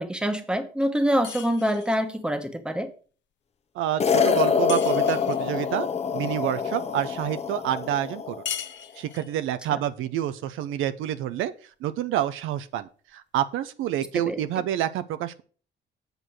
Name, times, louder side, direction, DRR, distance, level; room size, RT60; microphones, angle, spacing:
voice 1, 0.0-2.9 9.7-9.8 14.3-14.4, equal, 5° right, 8 dB, 1.2 m, -25 dB
sound 1, 1.2-2.1 4.7-5.5 8.5-9.4, left 9 dB, 65° left, 0.8 m, -37 dB
voice 2, 3.7-5.9 6.1-8.4 9.0-11.5 11.8-15.4, right 11 dB, 85° right, 12 dB, 0.6 m, -28 dB
sound 2, 4.0-8.5, left 6 dB, 35° left, 0.8 m, -25 dB
7.9 x 4.6 x 6.3 m, 0.40 s
cardioid pair, 90°, 20 cm